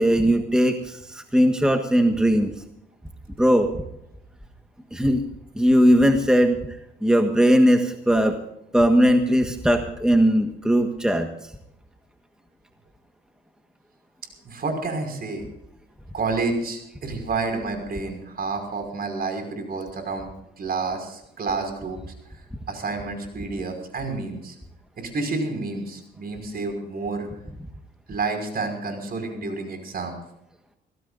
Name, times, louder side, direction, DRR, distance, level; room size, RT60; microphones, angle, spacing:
voice 1, 0.0-2.5 3.4-3.7 4.9-5.2 5.5-6.6 7.0-8.4 8.7-11.3, equal, 5° right, 5 dB, 1.5 m, -19 dB
voice 2, 14.4-15.4 16.1-20.3 20.6-22.0 22.7-24.6 25.0-27.3 28.1-30.2, right 3 dB, 50° right, 5 dB, 5.7 m, -29 dB
25.0 x 17.0 x 2.6 m, 0.81 s
cardioid pair, 90°, 20 cm